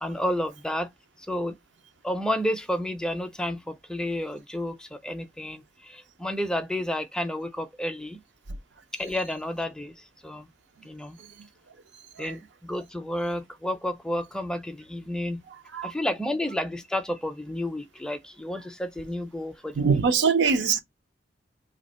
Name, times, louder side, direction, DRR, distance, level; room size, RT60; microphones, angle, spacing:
voice 1, 0.0-0.9 1.2-1.6 2.0-8.2 8.9-10.5 10.8-11.2 12.2-15.4 15.8-20.0, left 1 dB, 5° left, 0.4 m, -31 dB
voice 2, 19.8-20.8, right 5 dB, 75° right, 0.6 m, -23 dB
2.7 x 2.6 x 4.1 m
head